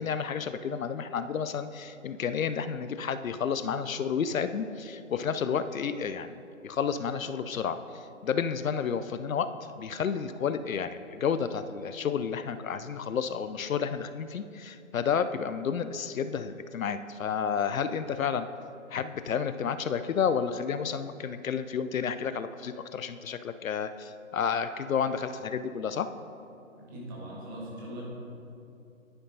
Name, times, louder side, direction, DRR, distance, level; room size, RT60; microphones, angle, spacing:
voice 1, 0.0-9.5 9.8-18.5 18.9-26.1, left 7 dB, 70° left, 11 dB, 0.5 m, -31 dB
voice 2, 26.8-28.0, right 1 dB, 15° right, -4 dB, 1.1 m, -41 dB
10.5 x 9.5 x 2.7 m, 2.7 s
figure-of-eight pair, 150°, 42 cm